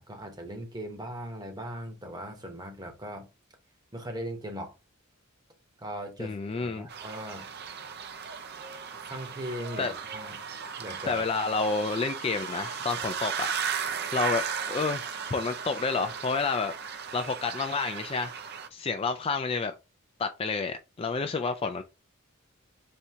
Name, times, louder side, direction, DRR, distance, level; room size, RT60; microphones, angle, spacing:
voice 1, 0.0-3.3 3.9-4.7 5.8-7.5 9.1-10.4 10.8-11.2, equal, 20° right, 1.0 m, -39 dB
voice 2, 6.2-6.9 9.8-9.9 11.1-13.5 13.8-18.3 18.7-19.7 20.2-21.8, left 4 dB, 25° left, 0.3 m, -30 dB
sound 1, 6.9-18.7, right 6 dB, 50° right, 0.5 m, -36 dB
4.3 x 2.7 x 3.5 m
head